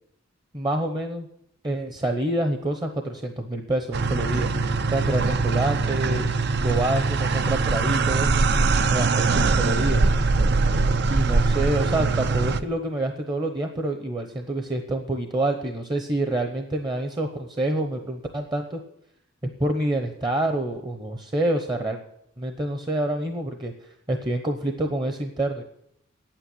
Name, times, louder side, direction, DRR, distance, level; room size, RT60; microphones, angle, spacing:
voice 1, 0.5-1.3 1.6-4.5 4.9-6.3 6.6-8.3 8.9-10.1 11.1-18.8 19.6-22.0 22.4-23.7 24.1-25.6, right 1 dB, 20° right, 5 dB, 0.9 m, -27 dB
sound 1, 3.9-12.6, right 3 dB, 55° right, 0.6 m, -22 dB
9.7 x 9.0 x 9.7 m, 0.74 s
head